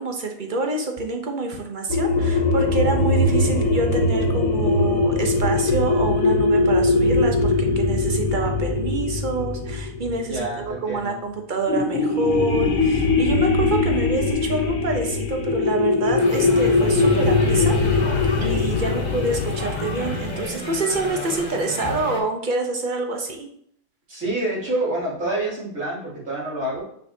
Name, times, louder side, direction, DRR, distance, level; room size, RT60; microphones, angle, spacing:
voice 1, 0.0-18.0 18.4-23.5, right 2 dB, 40° right, 3 dB, 1.0 m, -27 dB
sound 1, 1.9-11.0 11.7-20.4, left 3 dB, 90° left, 1.4 m, -21 dB
voice 2, 10.3-11.2 24.1-26.8, right 2 dB, 65° right, -8 dB, 3.5 m, -27 dB
sound 2, 16.2-22.2, left 1 dB, 30° left, 1.6 m, -32 dB
6.8 x 6.1 x 2.8 m, 0.66 s
omnidirectional pair, 1.4 m